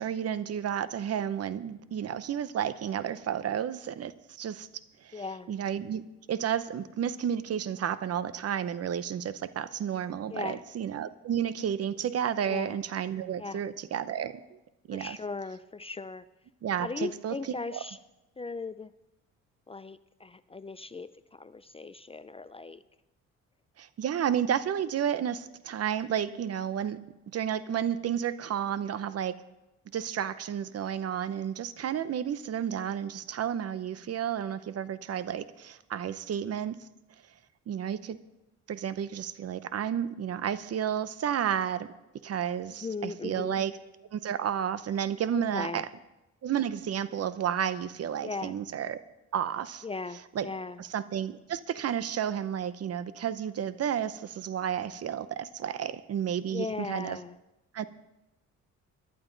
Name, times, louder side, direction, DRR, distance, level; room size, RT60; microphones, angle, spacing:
voice 1, 0.0-4.7 5.0-5.2 5.5-6.0 6.3-14.6 14.9-15.2 16.6-17.3 17.7-17.8 23.8-27.0 27.3-29.4 29.9-36.8 37.7-38.2 38.7-41.9 42.2-43.8 44.1-45.9 46.4-49.0 49.3-49.8 50.3-50.5 50.8-57.2 57.7-57.8, right 9 dB, 55° right, 14 dB, 0.8 m, -31 dB
voice 2, 5.1-5.5 10.3-10.6 12.5-12.8 13.4-13.6 14.9-16.2 16.8-18.0 18.4-18.9 19.7-22.8 42.8-43.7 45.3-45.8 48.2-48.5 49.8-50.8 56.5-57.4, left 4 dB, 20° left, 14 dB, 0.4 m, -38 dB
18.0 x 11.5 x 4.0 m, 0.97 s
cardioid pair, 90°, 30 cm